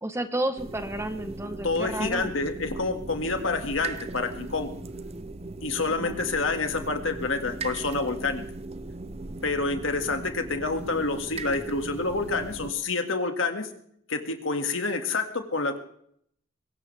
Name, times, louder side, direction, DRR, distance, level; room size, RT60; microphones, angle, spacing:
voice 1, 0.0-2.4 6.0-6.2, right 1 dB, 15° right, 8 dB, 1.0 m, -31 dB
sound 1, 0.6-12.7, right 2 dB, 30° right, 0.7 m, -38 dB
voice 2, 1.6-4.7 5.6-8.4 9.4-13.7 14.1-15.8, left 3 dB, 70° left, 6 dB, 2.0 m, -28 dB
22.0 x 18.0 x 3.4 m, 0.67 s
head